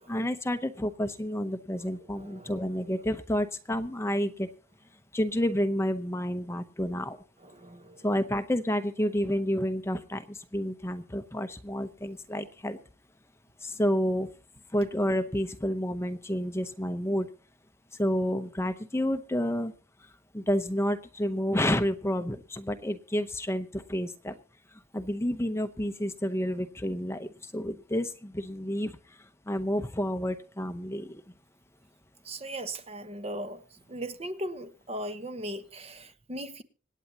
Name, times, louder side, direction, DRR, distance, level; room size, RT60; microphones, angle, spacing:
voice 1, 0.1-4.5 5.1-7.2 8.0-12.8 13.6-14.3 14.7-17.3 18.0-19.7 20.3-24.4 24.9-31.2, equal, 15° left, 0.7 m, -30 dB
voice 2, 2.1-3.0 7.4-8.1 32.2-33.6 33.9-36.6, right 1 dB, 30° right, 1.0 m, -38 dB
26.0 x 9.2 x 2.8 m
head